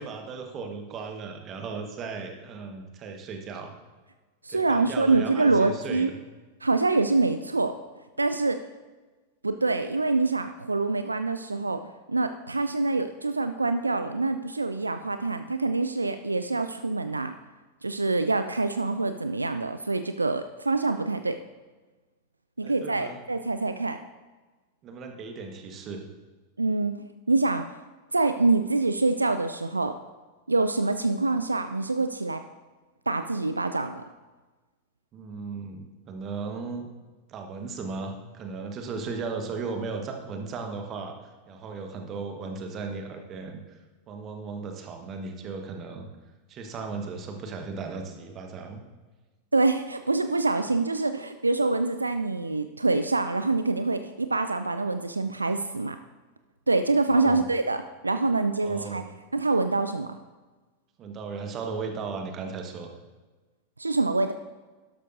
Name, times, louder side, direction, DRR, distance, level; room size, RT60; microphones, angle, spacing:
voice 1, 0.0-3.7 4.5-6.1 22.6-23.1 24.8-26.1 35.1-36.9 37.3-43.8 44.1-46.1 46.5-48.8 57.1-57.5 58.6-59.1 61.0-62.9, right 4 dB, 30° right, 4 dB, 1.4 m, -36 dB
voice 2, 4.4-6.1 6.6-7.7 8.2-8.6 9.4-11.8 12.1-17.3 17.8-21.4 22.6-24.0 26.6-27.0 27.3-27.7 28.1-30.0 30.5-32.4 33.1-34.0 49.5-56.0 56.7-59.0 59.3-60.2 63.8-64.3, right 3 dB, 80° right, 9 dB, 0.3 m, -25 dB
12.0 x 12.0 x 2.7 m, 1.3 s
figure-of-eight pair, 90°, 0 cm